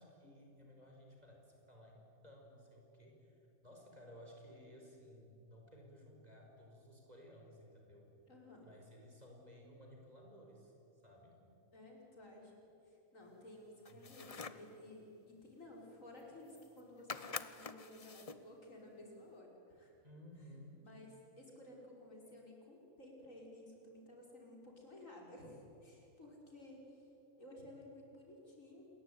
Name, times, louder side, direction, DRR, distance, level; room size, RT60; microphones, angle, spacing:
voice 1, 0.0-8.1 8.6-11.4 13.9-14.2 20.0-20.9, equal, 25° right, 0 dB, 5.2 m, -58 dB
voice 2, 8.3-8.7 11.7-12.5 12.8-19.9 20.8-21.1 21.4-27.1 27.4-28.9, left 1 dB, 60° left, -1 dB, 5.8 m, -55 dB
sound 1, 13.8-14.7 16.2-16.3 16.5-16.8 17.1-18.5, left 4 dB, 30° left, 0.8 m, -46 dB
27.5 x 22.0 x 9.4 m, 3.0 s
omnidirectional pair, 1.5 m